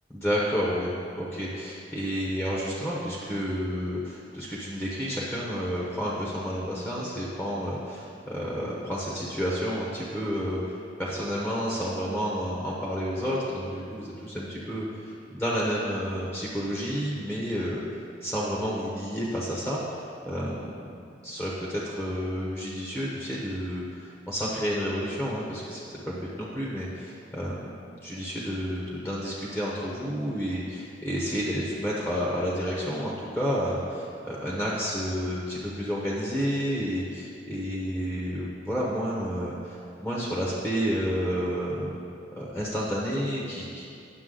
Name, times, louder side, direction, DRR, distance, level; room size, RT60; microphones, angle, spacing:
voice 1, 0.1-17.8 18.2-20.8 21.2-27.7 28.0-41.9 42.4-43.8, equal, 5° left, -5 dB, 0.9 m, -30 dB
9.6 x 7.0 x 3.8 m, 2.5 s
head